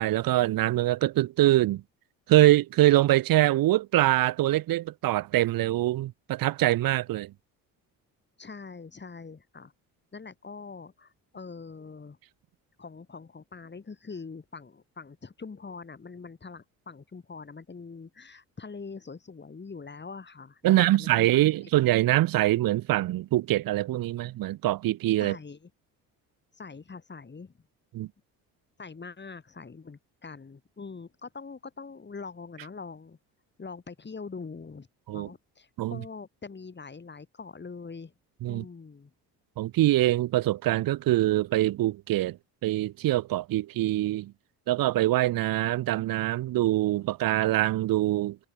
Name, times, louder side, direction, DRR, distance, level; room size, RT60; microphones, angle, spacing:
voice 1, 0.0-1.8 2.3-7.3 20.6-25.4 27.9-28.1 35.1-35.3 35.8-36.0 38.4-38.6 39.6-42.4 42.6-44.3 44.7-48.4, right 15 dB, 70° right, 1.2 m, -24 dB
voice 2, 8.4-9.7 10.1-12.2 12.8-21.7 25.2-25.6 26.5-27.5 28.8-33.2 33.6-38.1 38.5-39.1, left 4 dB, 30° left, 7.8 m, -43 dB
cardioid pair, 85°, 36 cm